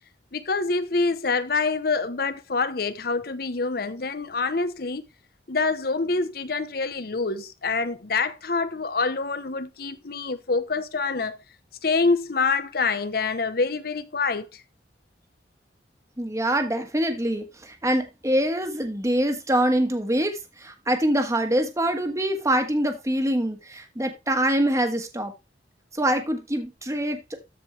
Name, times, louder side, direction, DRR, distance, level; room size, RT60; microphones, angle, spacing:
voice 1, 0.3-5.0 5.5-11.4 11.8-14.6, left 4 dB, 55° left, 0.9 m, -26 dB
voice 2, 16.2-25.3 25.9-27.2, right 1 dB, 15° right, 1.4 m, -24 dB
13.5 x 4.8 x 3.2 m
head